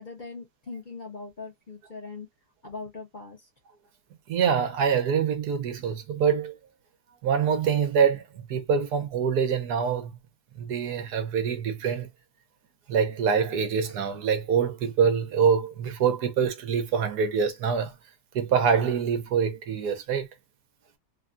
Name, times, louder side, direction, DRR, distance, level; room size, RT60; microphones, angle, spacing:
voice 1, 0.0-2.3 2.6-3.5, left 3 dB, 40° left, 0.8 m, -40 dB
voice 2, 4.3-6.5 7.2-8.2 8.5-10.1 10.6-12.1 12.9-17.9 18.3-20.3, right 6 dB, 75° right, 1.3 m, -25 dB
3.4 x 2.3 x 2.5 m
omnidirectional pair, 1.8 m